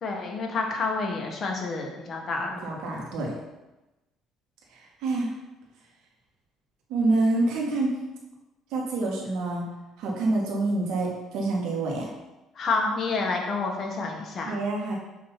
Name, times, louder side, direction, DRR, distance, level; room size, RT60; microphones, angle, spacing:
voice 1, 0.0-2.5 7.3-7.4 12.6-14.5, left 3 dB, 40° left, 0 dB, 1.3 m, -29 dB
voice 2, 2.6-3.3 4.7-5.3 6.9-8.0 8.7-9.6 10.0-12.1 14.4-15.0, right 2 dB, 75° right, -2 dB, 1.5 m, -27 dB
6.4 x 2.8 x 5.6 m, 1.0 s
cardioid pair, 115°, 0 cm